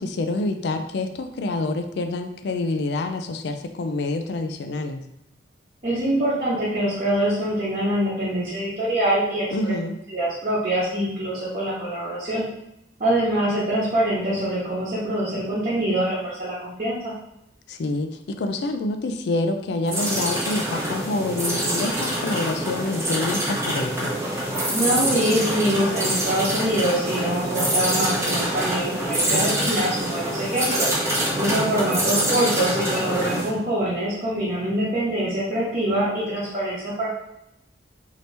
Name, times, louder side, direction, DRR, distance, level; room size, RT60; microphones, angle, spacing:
voice 1, 0.0-5.0 9.5-10.0 17.7-24.1 29.3-29.7 31.3-31.7, left 2 dB, 65° left, 7 dB, 0.3 m, -27 dB
voice 2, 5.8-9.5 10.1-12.4 13.0-17.1 24.7-30.9 31.4-37.1, right 1 dB, 40° right, -10 dB, 1.0 m, -24 dB
sound 1, 19.9-33.5, right 1 dB, 15° right, 0.7 m, -25 dB
2.9 x 2.8 x 3.3 m, 0.80 s
head